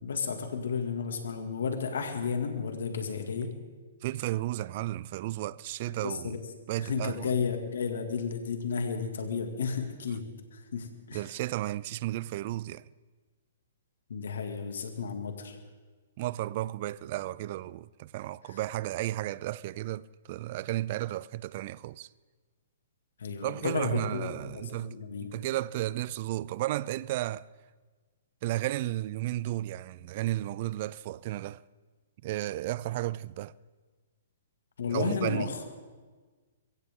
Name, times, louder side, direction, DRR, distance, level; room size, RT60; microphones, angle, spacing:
voice 1, 0.0-3.5 5.9-6.4 6.8-10.2 10.5-11.2 14.1-15.6 18.5-18.6 23.2-25.3 34.8-35.6, left 5 dB, 80° left, 2.3 m, -33 dB
voice 2, 4.0-6.4 6.7-7.3 11.1-12.9 16.2-22.1 23.4-25.0 25.2-27.5 28.4-31.6 32.2-33.5 34.9-35.5, right 15 dB, 40° right, 0.4 m, -33 dB
22.5 x 16.0 x 3.8 m
hypercardioid pair, 150°, 0 cm